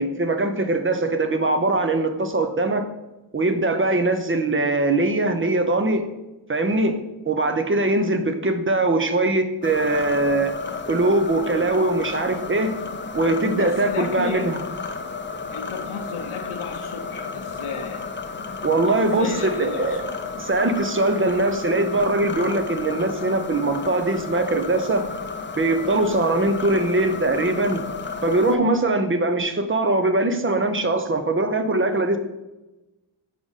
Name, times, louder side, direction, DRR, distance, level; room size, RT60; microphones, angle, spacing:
voice 1, 0.0-2.9 3.3-6.0 6.5-7.0 7.3-10.5 10.9-12.7 13.1-14.6 18.6-20.0 20.4-25.0 25.6-27.8 28.2-32.2, right 2 dB, 25° right, 7 dB, 0.6 m, -21 dB
sound 1, 9.6-28.6, left 4 dB, 25° left, 0.5 m, -33 dB
voice 2, 13.5-14.5 15.5-18.0 19.0-20.1, left 6 dB, 80° left, 5 dB, 0.8 m, -33 dB
5.0 x 4.9 x 4.0 m, 1.0 s
cardioid pair, 60°, 49 cm